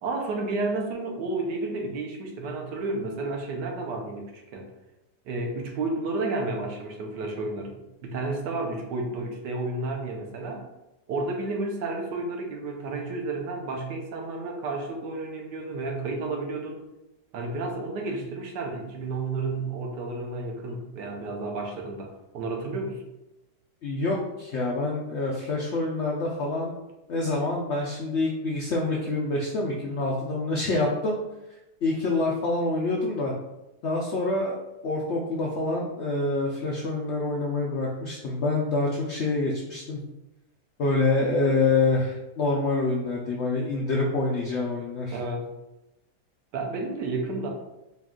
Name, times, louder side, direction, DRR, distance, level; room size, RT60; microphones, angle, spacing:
voice 1, 0.0-4.7 5.2-10.6 11.1-16.8 17.3-23.0 45.1-45.5 46.5-47.5, right 3 dB, 85° right, 1 dB, 1.4 m, -31 dB
voice 2, 23.8-26.7 27.1-31.2 31.8-33.3 33.8-34.6 34.8-40.0 40.8-45.2, left 2 dB, 75° left, -2 dB, 0.6 m, -26 dB
4.4 x 2.4 x 3.6 m, 0.96 s
omnidirectional pair, 1.8 m